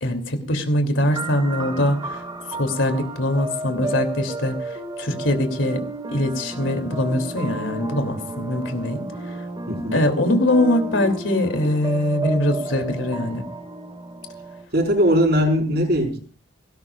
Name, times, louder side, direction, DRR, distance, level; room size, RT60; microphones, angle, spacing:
voice 1, 0.0-2.2 2.5-5.8 6.1-9.4 9.9-13.4, left 1 dB, 80° left, 6 dB, 3.0 m, -22 dB
sound 1, 1.1-14.6, right 2 dB, 25° right, 2.0 m, -32 dB
voice 2, 9.7-10.0 14.7-16.4, equal, 55° right, 2 dB, 5.1 m, -20 dB
19.0 x 17.5 x 2.5 m, 0.41 s
head